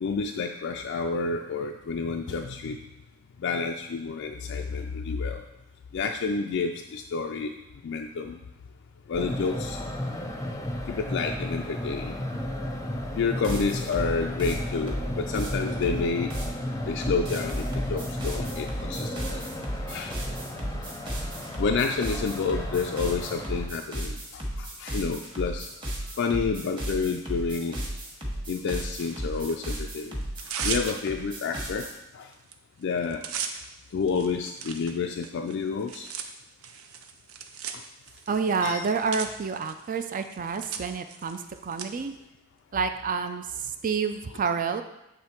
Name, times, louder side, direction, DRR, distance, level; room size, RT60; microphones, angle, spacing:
voice 1, 0.0-2.8 3.4-5.4 5.9-7.5 7.8-8.4 9.1-9.8 10.9-12.2 13.2-16.4 16.9-19.4 19.9-20.2 21.6-24.2 24.6-25.7 26.2-27.8 28.5-30.2 30.6-31.9 32.1-32.3 32.8-33.2 33.9-36.1 38.6-38.8, left 4 dB, 60° left, 3 dB, 0.3 m, -29 dB
sound 1, 9.1-23.7, left 1 dB, 15° left, 0.6 m, -34 dB
sound 2, 13.4-16.6 17.0-31.9, equal, 25° right, 1.3 m, -34 dB
Tearing, 28.9-29.8 30.2-31.3 31.8-31.9 32.2-32.5 32.8-41.9, right 7 dB, 85° right, 0.6 m, -38 dB
voice 2, 38.3-42.1 42.7-44.8, right 5 dB, 40° right, 8 dB, 0.4 m, -29 dB
7.5 x 3.5 x 4.4 m, 0.92 s
head